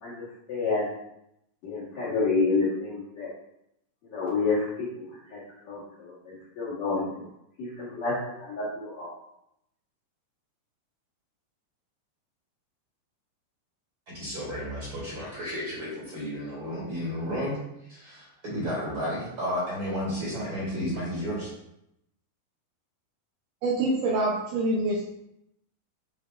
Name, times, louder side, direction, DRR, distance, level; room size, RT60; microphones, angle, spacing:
voice 1, 0.0-0.9 1.6-3.3 4.0-5.4 5.7-7.3 7.6-9.1, left 3 dB, 55° left, -10 dB, 2.4 m, -29 dB
voice 2, 14.1-17.6 17.9-21.5, equal, 35° right, -6 dB, 2.5 m, -32 dB
voice 3, 23.6-25.1, right 2 dB, 80° right, -4 dB, 1.8 m, -26 dB
9.5 x 4.5 x 2.6 m, 0.80 s
omnidirectional pair, 4.7 m